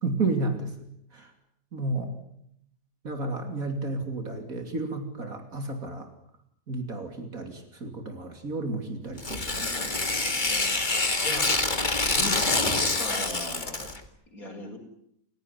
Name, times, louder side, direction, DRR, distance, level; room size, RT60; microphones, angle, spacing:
voice 1, 0.0-0.9 1.1-1.3 1.7-2.1 3.0-6.1 6.7-9.9, right 3 dB, 75° right, 6 dB, 3.4 m, -32 dB
Tearing, 9.2-14.0, left 3 dB, 35° left, 2.3 m, -26 dB
voice 2, 10.1-11.8 12.1-13.9 14.3-14.8, left 1 dB, 75° left, 3 dB, 6.3 m, -39 dB
29.5 x 17.0 x 9.8 m, 0.74 s
omnidirectional pair, 1.5 m